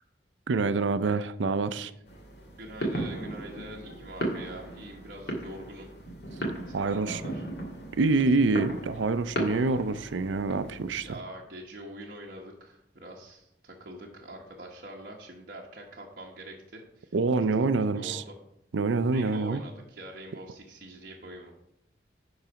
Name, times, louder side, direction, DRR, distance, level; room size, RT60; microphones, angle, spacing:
voice 1, 0.5-1.9 6.7-7.2 7.9-11.1 17.1-18.2 18.7-19.6, right 3 dB, 90° right, 0.5 m, -26 dB
sound 1, 2.1-11.2, right 1 dB, 70° left, 1.9 m, -37 dB
voice 2, 2.6-5.9 6.7-7.4 11.0-17.1 17.9-18.3 19.1-21.5, right 1 dB, 50° right, 1.1 m, -44 dB
10.5 x 4.0 x 5.7 m
head